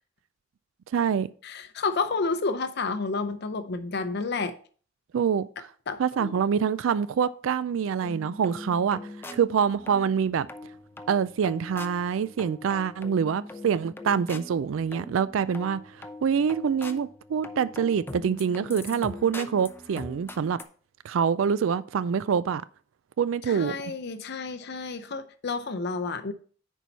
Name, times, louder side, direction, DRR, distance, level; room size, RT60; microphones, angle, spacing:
voice 1, 0.9-1.3 5.1-5.5 6.0-9.0 9.3-10.5 11.1-15.8 16.2-20.6 21.0-22.6 23.2-23.8, right 7 dB, 90° right, 0.4 m, -25 dB
voice 2, 1.4-4.5 5.9-6.6 23.4-26.3, left 4 dB, 60° left, 0.6 m, -30 dB
The Lair, 8.0-20.6, left 2 dB, 10° left, 0.6 m, -42 dB
10.0 x 4.6 x 4.1 m
head